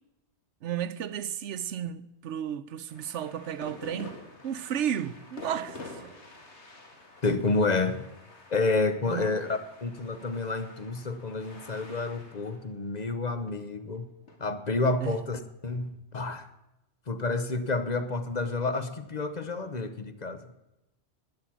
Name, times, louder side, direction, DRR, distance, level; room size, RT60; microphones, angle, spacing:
voice 1, 0.6-4.2 4.4-6.1 9.1-9.4 15.0-15.2, right 9 dB, 90° right, 1.0 m, -33 dB
sound 1, 2.9-14.4, left 2 dB, 75° left, 2.3 m, -48 dB
voice 2, 7.2-8.1 8.5-14.1 14.4-16.5 17.1-20.6, left 3 dB, 40° left, 0.9 m, -29 dB
12.0 x 9.7 x 8.7 m
omnidirectional pair, 1.2 m